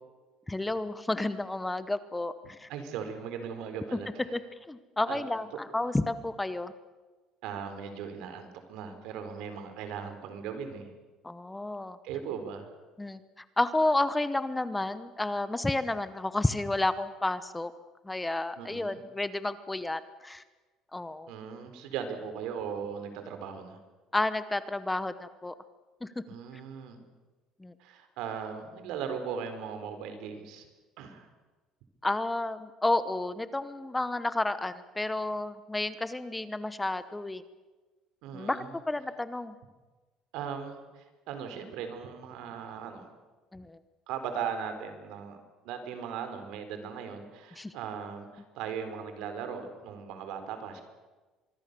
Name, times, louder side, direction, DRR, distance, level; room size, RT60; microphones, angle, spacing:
voice 1, 0.5-2.7 3.9-4.0 4.3-4.4 4.7-6.7 11.2-12.0 13.0-13.2 13.6-17.7 18.0-20.4 20.9-21.3 24.1-25.5 26.0-26.1 27.6-27.7 32.0-37.4 38.3-39.5 43.5-43.8 47.6-47.7, left 2 dB, 10° left, 13 dB, 0.9 m, -31 dB
voice 2, 2.4-4.2 5.1-5.2 7.4-10.9 12.0-12.7 18.6-19.0 21.3-23.8 26.3-27.0 27.8-30.7 31.0-31.3 38.2-38.8 40.3-43.1 44.1-45.4 45.6-50.8, right 7 dB, 75° right, 8 dB, 4.4 m, -38 dB
25.0 x 23.0 x 6.9 m, 1.3 s
cardioid pair, 140°, 0 cm